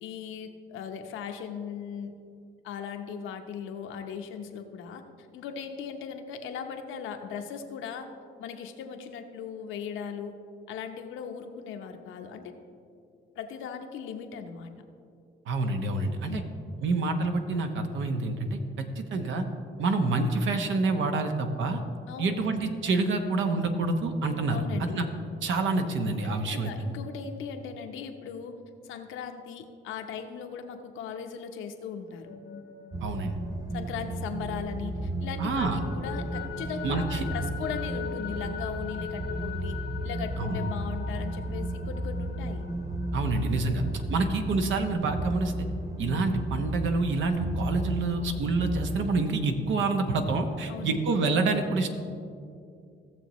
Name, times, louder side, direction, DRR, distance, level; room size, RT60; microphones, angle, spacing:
voice 1, 0.0-2.2 2.6-5.0 5.3-8.1 8.4-10.4 10.7-12.5 13.4-14.7 16.3-16.5 22.1-22.4 24.5-25.3 26.5-28.5 28.8-32.3 33.7-42.6 50.7-51.0, left 7 dB, 90° left, 5 dB, 0.9 m, -38 dB
voice 2, 15.5-16.4 16.8-19.4 19.8-21.8 22.2-25.1 25.4-26.7 33.0-33.3 35.4-35.8 36.8-37.2 40.4-40.7 43.1-43.8 44.1-45.7 46.0-51.9, right 3 dB, 75° right, 6 dB, 1.0 m, -27 dB
sound 1, 32.1-34.9 35.3-44.7, left 8 dB, 55° left, 0.7 m, -42 dB
sound 2, 32.9-49.2, right 1 dB, 15° right, 0.5 m, -34 dB
16.0 x 7.0 x 3.1 m, 2.4 s
cardioid pair, 90°, 20 cm